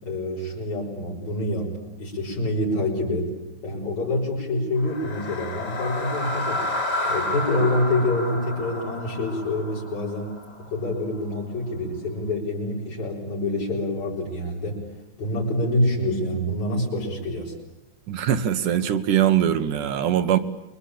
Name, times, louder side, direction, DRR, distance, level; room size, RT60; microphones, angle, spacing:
voice 1, 0.0-3.3 3.6-6.6 7.0-10.4 10.7-14.8 15.2-17.5, left 1 dB, 65° left, 7.1 m, -26 dB
sound 1, 4.8-10.9, left 1 dB, 30° left, 3.7 m, -30 dB
voice 2, 18.1-20.4, right 10 dB, 80° right, 3.0 m, -22 dB
28.5 x 24.0 x 8.7 m
omnidirectional pair, 3.6 m